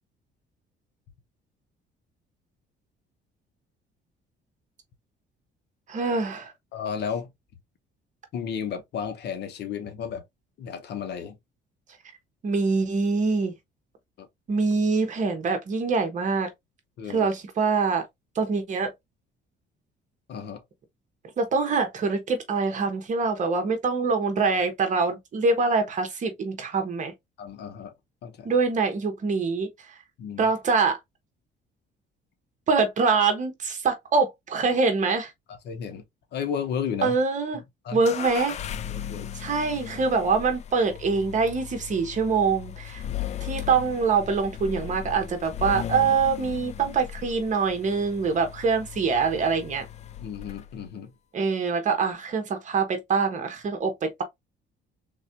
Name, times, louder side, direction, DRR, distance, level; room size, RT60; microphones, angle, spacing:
voice 1, 5.9-6.5 12.4-13.5 14.5-16.5 17.1-18.0 18.3-18.9 21.4-27.1 28.4-29.7 30.4-31.0 32.7-35.3 37.0-37.6 37.9-38.5 39.3-43.0 43.4-49.8 51.3-54.2, right 4 dB, 40° right, 1.2 m, -24 dB
voice 2, 6.7-7.3 8.3-10.2 10.6-11.4 14.2-14.3 17.0-17.3 20.3-20.6 27.4-27.9 28.2-28.5 30.2-30.5 35.5-36.0 36.3-37.2 37.8-38.0 38.9-39.3 43.1-43.4 50.2-51.1, left 7 dB, 65° left, 1.0 m, -33 dB
sound 1, 38.0-50.9, left 10 dB, 35° left, 0.4 m, -37 dB
3.8 x 3.1 x 2.8 m
cardioid pair, 135°, 19 cm